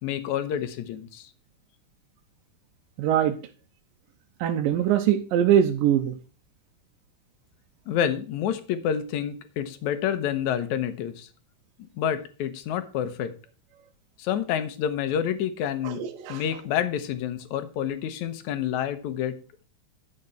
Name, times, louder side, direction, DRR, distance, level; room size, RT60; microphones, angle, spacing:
voice 1, 0.0-1.3 7.9-11.3 12.0-13.3 14.2-16.0 16.3-19.3, left 9 dB, 70° left, 11 dB, 2.1 m, -28 dB
voice 2, 3.0-3.4 4.4-6.2 15.8-16.4, right 10 dB, 85° right, 4 dB, 2.4 m, -22 dB
11.0 x 6.6 x 4.3 m, 0.38 s
omnidirectional pair, 4.0 m